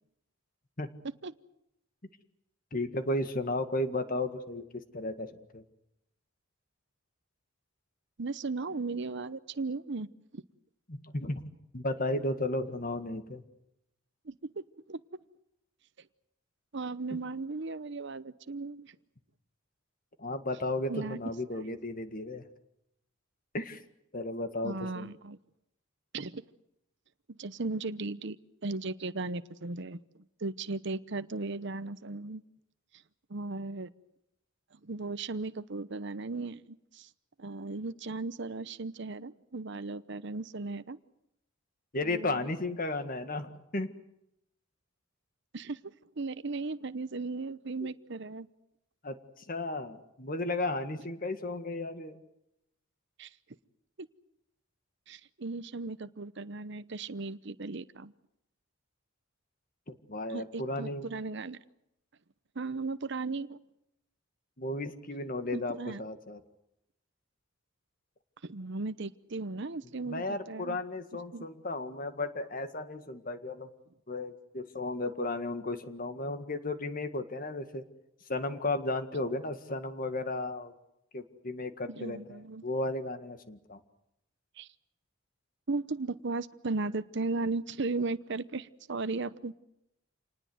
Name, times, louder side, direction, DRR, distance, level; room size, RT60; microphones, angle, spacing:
voice 1, 2.7-5.6 10.9-13.4 17.1-17.2 20.2-22.4 23.5-23.8 24.1-25.1 41.9-43.9 47.8-47.9 49.0-52.2 59.9-61.1 64.6-66.4 69.8-73.7 74.1-77.8 78.3-80.7 81.1-83.8, left 2 dB, 40° left, 9 dB, 1.9 m, -34 dB
voice 2, 8.2-10.1 10.3-10.4 14.3-15.0 16.7-19.0 20.9-21.2 21.7-21.8 24.6-25.4 26.1-26.4 27.3-28.4 28.6-30.0 30.4-32.4 33.3-33.9 34.8-37.1 37.4-41.0 42.0-42.5 45.5-48.5 53.2-53.3 54.0-54.1 55.1-58.1 60.3-61.6 62.6-63.6 65.5-66.0 68.4-70.8 71.3-71.5 81.9-82.7 84.6-84.7 85.7-89.5, right 3 dB, 60° right, 13 dB, 0.9 m, -36 dB
28.0 x 19.5 x 8.0 m, 0.83 s
head